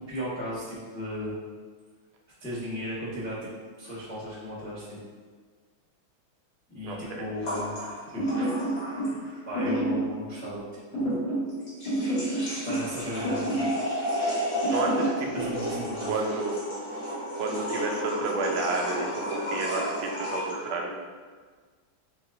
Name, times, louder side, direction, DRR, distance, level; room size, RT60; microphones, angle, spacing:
voice 1, 0.1-1.3 2.4-3.4 3.8-5.0 6.7-8.2 9.1-10.6 10.9-11.2 12.6-13.8 15.3-16.2, equal, 10° left, -8 dB, 0.4 m, -36 dB
voice 2, 6.8-7.2 14.7-15.5 16.1-16.6 17.4-20.9, right 3 dB, 80° right, 0 dB, 1.5 m, -31 dB
sound 1, 7.4-9.4 9.7-9.8 11.5-20.6, equal, 40° left, 1.3 m, -33 dB
sound 2, 8.2-9.2 9.5-10.1 10.9-11.5 11.9-12.9 13.2-13.8 14.6-15.1, right 1 dB, 75° left, 2.6 m, -28 dB
6.9 x 2.4 x 2.5 m, 1.5 s
omnidirectional pair, 2.3 m